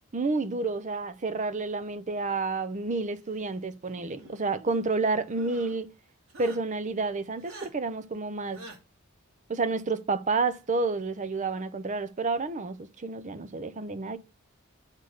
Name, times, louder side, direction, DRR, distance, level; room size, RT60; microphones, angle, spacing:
voice 1, 0.1-5.9 6.4-8.6 9.5-14.2, right 3 dB, 35° right, 0.6 m, -30 dB
sound 1, 3.9-4.7 5.3-5.8 6.3-6.6 7.4-7.7 8.5-8.8, right 2 dB, 65° right, 2.5 m, -47 dB
8.1 x 3.9 x 6.6 m
head